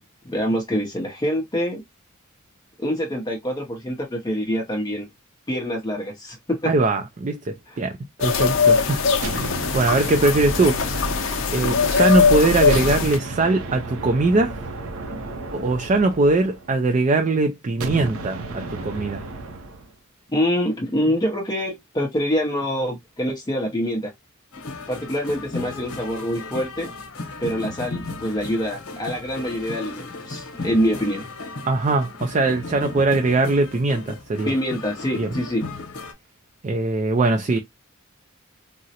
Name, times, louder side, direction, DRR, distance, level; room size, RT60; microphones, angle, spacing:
voice 1, 0.2-1.8 2.8-5.1 5.5-6.7 7.7-7.8 20.3-24.1 24.9-26.9 27.4-31.3 34.5-35.6, equal, 20° left, 0.6 m, -25 dB
voice 2, 6.7-7.9 8.2-9.0 9.3-11.0 11.3-14.5 15.5-19.2 31.7-34.5 35.2-35.3 36.6-37.6, right 2 dB, 35° right, 0.4 m, -21 dB
sound 1, 8.2-13.2, left 5 dB, 65° left, 0.6 m, -21 dB
sound 2, 9.2-12.2 12.7-16.9 17.8-19.9, right 2 dB, 75° right, 0.7 m, -33 dB
sound 3, 24.5-36.1, left 3 dB, 85° left, 0.9 m, -35 dB
3.7 x 2.0 x 2.7 m
head